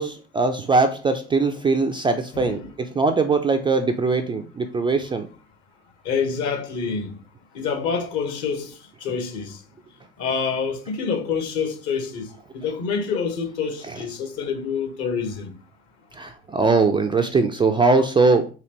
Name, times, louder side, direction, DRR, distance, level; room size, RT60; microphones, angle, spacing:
voice 1, 0.0-5.3 16.1-18.5, right 3 dB, 15° right, 0.3 m, -21 dB
voice 2, 2.3-2.7 6.0-7.1 7.5-8.7 9.0-9.6 10.2-12.3 12.5-15.5, left 5 dB, 55° left, 1.1 m, -27 dB
4.0 x 2.7 x 3.0 m
figure-of-eight pair, 55°, 33 cm